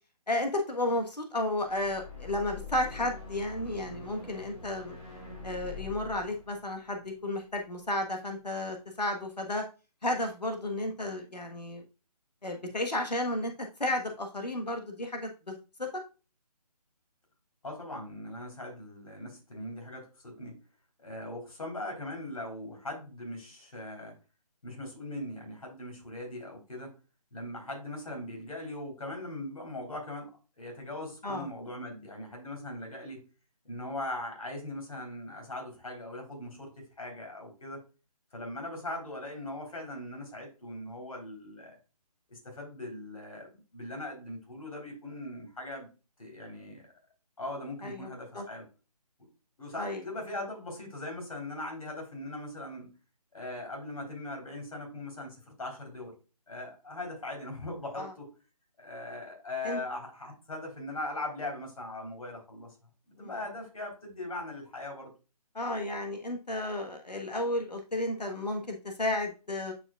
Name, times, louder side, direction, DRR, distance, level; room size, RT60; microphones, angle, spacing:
voice 1, 0.3-5.0 5.4-9.6 10.0-11.8 12.4-13.5 13.8-15.9 31.2-31.5 47.8-48.1 48.3-48.4 49.8-50.0 58.0-58.1 59.6-59.8 63.2-63.3 65.5-69.7, left 1 dB, 85° left, 4 dB, 1.3 m, -33 dB
sound 1, 1.6-8.0, left 4 dB, 40° left, 3.1 m, -45 dB
voice 2, 17.6-20.6 21.0-24.1 24.6-26.9 27.3-30.3 30.6-33.2 33.6-37.8 38.3-41.8 42.3-45.9 46.2-46.9 47.4-48.6 49.6-52.9 53.3-56.1 56.5-58.3 58.8-62.7 63.1-65.1, left 1 dB, 60° left, 1 dB, 3.6 m, -40 dB
9.6 x 5.0 x 2.4 m, 0.32 s
figure-of-eight pair, 150°, 20 cm